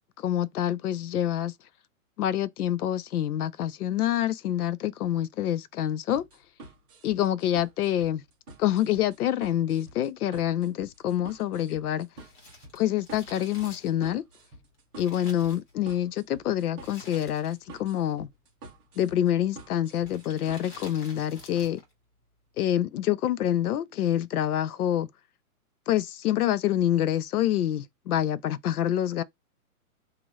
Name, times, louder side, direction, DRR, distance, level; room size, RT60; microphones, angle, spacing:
voice 1, 0.0-1.5 2.2-6.2 7.0-8.2 8.6-12.1 12.7-14.2 15.0-18.3 19.0-21.8 22.6-25.1 25.9-29.2, left 11 dB, 75° left, 0.6 m, -27 dB
sound 1, 6.1-20.9, right 2 dB, 15° right, 0.7 m, -49 dB
Crumpling crinkling, 12.1-16.1 16.8-17.8 18.1-18.2 19.0-19.3 20.0-21.9 22.2-22.3, left 2 dB, 30° left, 1.4 m, -50 dB
3.0 x 2.5 x 4.0 m
hypercardioid pair, 165°, 45 cm